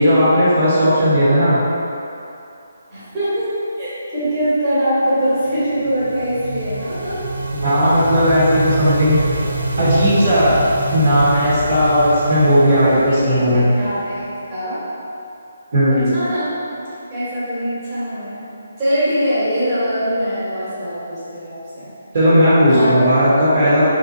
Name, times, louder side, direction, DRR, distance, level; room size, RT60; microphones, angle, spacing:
voice 1, 0.0-1.6 7.6-9.2 9.8-10.6 10.9-13.7 15.7-16.1 22.1-23.8, equal, 45° right, -10 dB, 1.3 m, -15 dB
voice 2, 2.9-3.5 3.8-7.2 12.8-14.8 16.1-16.8 17.1-18.5 18.8-21.9 22.7-23.1, equal, 20° right, -13 dB, 1.5 m, -22 dB
sound 1, 5.5-14.3, right 2 dB, 85° right, 0.5 m, -26 dB
4.1 x 2.7 x 3.9 m, 2.7 s
hypercardioid pair, 170°, 0 cm